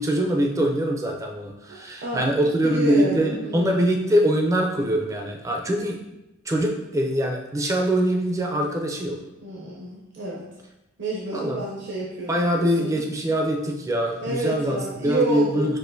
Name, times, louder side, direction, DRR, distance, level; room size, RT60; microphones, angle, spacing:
voice 1, 0.0-6.0 6.5-9.2 11.3-11.6 12.3-15.8, equal, 15° right, 1 dB, 0.4 m, -23 dB
voice 2, 2.0-2.4 2.6-4.0 9.4-10.5 11.0-13.0 14.2-15.7, right 2 dB, 60° right, -4 dB, 0.7 m, -29 dB
6.1 x 2.5 x 2.6 m, 0.95 s
head